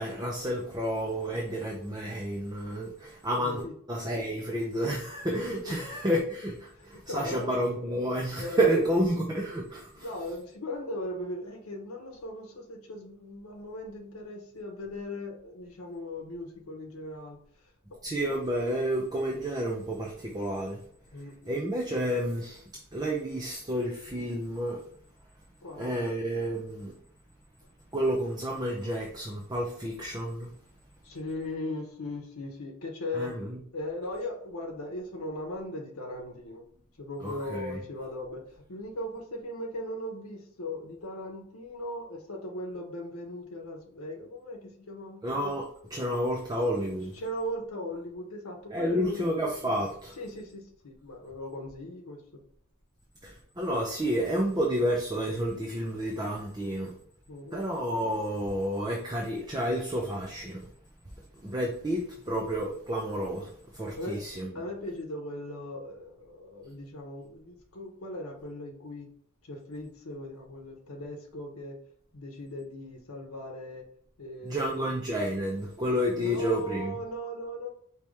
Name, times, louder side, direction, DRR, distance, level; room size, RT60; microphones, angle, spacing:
voice 1, 0.0-10.1 18.0-20.8 21.5-22.6 22.9-24.8 25.8-26.9 27.9-30.5 33.1-33.6 37.2-37.8 45.2-45.6 45.9-47.1 48.7-50.2 53.2-56.9 57.5-60.7 61.4-64.5 74.4-76.9, equal, 20° right, -1 dB, 0.6 m, -30 dB
voice 2, 3.4-3.7 5.4-5.8 6.4-7.5 8.4-8.8 10.0-17.4 18.2-18.3 21.1-21.3 25.6-25.9 31.0-33.4 33.7-36.6 37.0-45.2 47.1-49.2 50.2-52.2 57.3-57.6 64.0-64.2 64.5-69.1 69.4-71.8 72.1-73.8 74.2-74.9 76.1-77.7, left 1 dB, 90° left, 2 dB, 0.9 m, -38 dB
5.1 x 2.9 x 3.1 m, 0.62 s
head